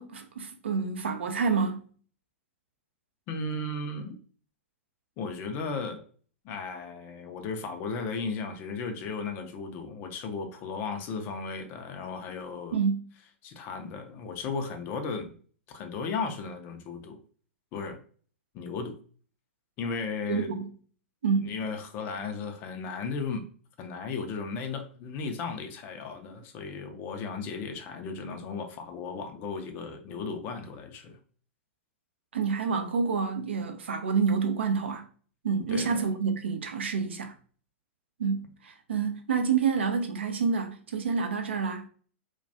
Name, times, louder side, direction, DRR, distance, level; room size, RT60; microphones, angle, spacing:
voice 1, 0.0-1.8 12.7-13.0 20.3-20.7 21.2-21.5 32.3-35.1 35.4-37.3 38.2-41.9, right 5 dB, 65° right, 0.4 m, -28 dB
voice 2, 3.3-4.2 5.2-6.0 6.4-12.8 13.4-15.4 15.7-17.2 17.7-18.0 18.5-18.9 19.8-20.5 21.4-23.4 23.8-31.2 35.7-36.0, left 4 dB, 30° left, 0.4 m, -35 dB
2.2 x 2.2 x 2.6 m
figure-of-eight pair, 105°, 7 cm